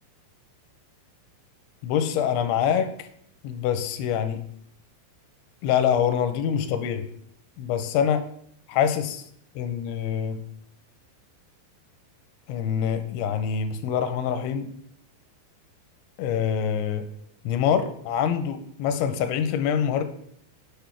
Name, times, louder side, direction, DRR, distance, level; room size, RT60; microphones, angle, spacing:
voice 1, 1.8-3.1 3.4-4.4 5.6-7.0 7.6-8.2 8.7-9.2 9.6-10.4 12.5-14.7 16.2-17.0 17.5-20.0, left 8 dB, 85° left, 9 dB, 2.9 m, -25 dB
8.9 x 5.2 x 4.5 m, 0.68 s
omnidirectional pair, 5.3 m